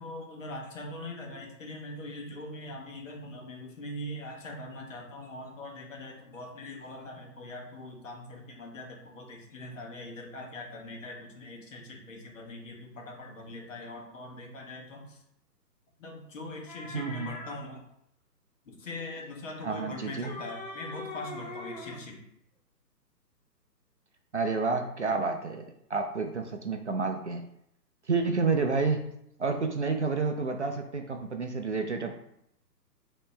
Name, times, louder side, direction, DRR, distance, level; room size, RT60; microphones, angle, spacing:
voice 1, 0.0-15.2 16.0-17.8 18.8-22.2, left 1 dB, 50° left, 0 dB, 1.4 m, -42 dB
sound 1, 16.7-17.6 19.9-22.0, left 2 dB, 30° left, 0.5 m, -42 dB
voice 2, 16.9-17.3 19.6-20.3 24.3-27.5 28.1-29.1 29.4-32.2, right 4 dB, 50° right, 5 dB, 0.4 m, -29 dB
5.1 x 3.0 x 3.3 m, 0.77 s
figure-of-eight pair, 135°, 49 cm